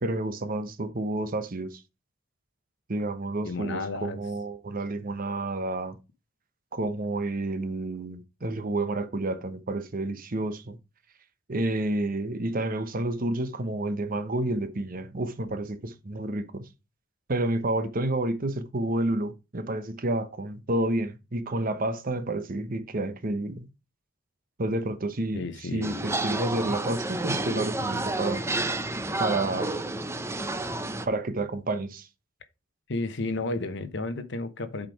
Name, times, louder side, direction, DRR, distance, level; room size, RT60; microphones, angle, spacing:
voice 1, 0.0-1.8 2.9-6.0 6.7-10.8 11.5-16.6 17.3-23.7 24.6-28.4 29.2-29.7 31.1-32.1, right 2 dB, 45° right, 0.9 m, -30 dB
voice 2, 3.4-4.2 25.3-26.0 32.9-34.9, left 2 dB, 65° left, 1.0 m, -32 dB
sound 1, 25.8-31.1, right 2 dB, 15° right, 0.6 m, -30 dB
7.5 x 5.0 x 4.7 m
head